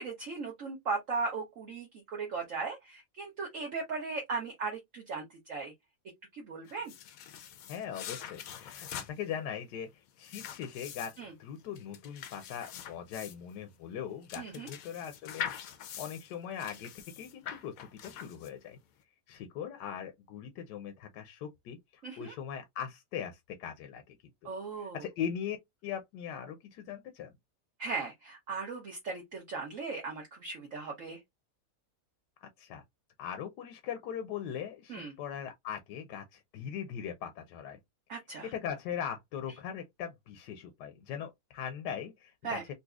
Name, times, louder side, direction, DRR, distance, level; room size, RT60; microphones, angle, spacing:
voice 1, 0.0-5.7 6.3-6.9 11.2-11.3 14.4-14.7 22.0-22.3 24.4-25.0 27.8-31.2 34.9-35.1 38.1-38.5 42.4-42.6, right 4 dB, 55° right, 1.1 m, -37 dB
sound 1, 6.7-18.8, left 9 dB, 70° left, 0.9 m, -44 dB
voice 2, 7.7-9.9 10.2-15.4 16.0-18.8 19.3-24.2 24.4-24.5 24.8-25.6 25.8-27.3 32.4-32.8 33.2-37.8 38.4-42.6, left 8 dB, 85° left, 1.2 m, -40 dB
4.0 x 2.7 x 2.3 m
omnidirectional pair, 1.8 m